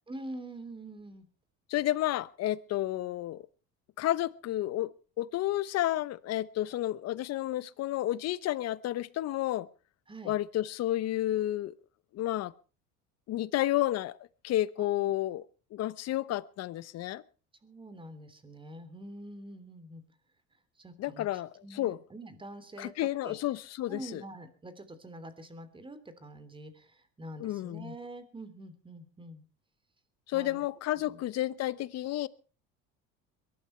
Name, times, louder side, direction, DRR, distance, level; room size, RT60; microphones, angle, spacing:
voice 1, 0.1-1.3 10.1-10.4 14.8-15.1 17.6-20.0 20.8-23.4 23.9-29.4 30.3-30.6 31.1-31.2, right 1 dB, 15° right, 12 dB, 3.2 m, -46 dB
voice 2, 1.7-3.4 4.0-4.9 5.2-9.7 10.2-11.7 12.1-12.5 13.3-14.2 14.4-15.4 15.7-17.2 21.0-22.0 22.8-24.2 27.4-27.9 30.3-32.3, left 14 dB, 50° left, 19 dB, 1.0 m, -31 dB
22.5 x 12.0 x 4.5 m, 0.37 s
supercardioid pair, 110°, 32 cm